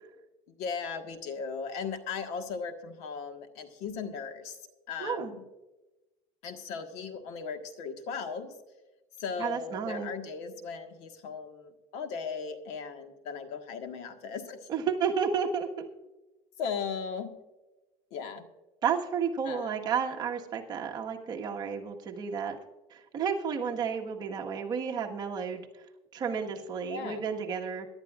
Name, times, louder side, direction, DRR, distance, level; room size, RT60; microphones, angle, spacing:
voice 1, 0.6-4.6 4.9-5.4 6.4-8.5 9.2-14.7 16.6-17.3 18.1-18.5 19.4-19.9 26.9-27.2, left 5 dB, 65° left, 6 dB, 1.5 m, -37 dB
voice 2, 5.0-5.3 9.4-10.1 14.7-15.9 18.8-22.6 22.9-25.7 26.1-27.9, right 6 dB, 35° right, 1 dB, 1.5 m, -32 dB
22.5 x 11.5 x 2.5 m, 1.1 s
cardioid pair, 150°, 12 cm